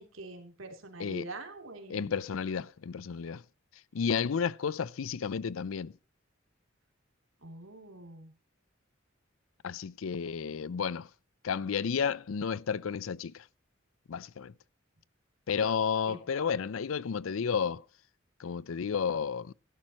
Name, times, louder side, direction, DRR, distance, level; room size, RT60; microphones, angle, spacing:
voice 1, 0.0-2.1 7.4-8.3 16.1-16.4, right 2 dB, 80° right, 3.0 m, -45 dB
voice 2, 1.9-3.4 3.9-5.9 9.6-11.1 11.4-13.4 14.1-14.5 15.5-17.8 18.4-19.5, left 6 dB, 90° left, 0.5 m, -32 dB
15.5 x 12.0 x 3.0 m
head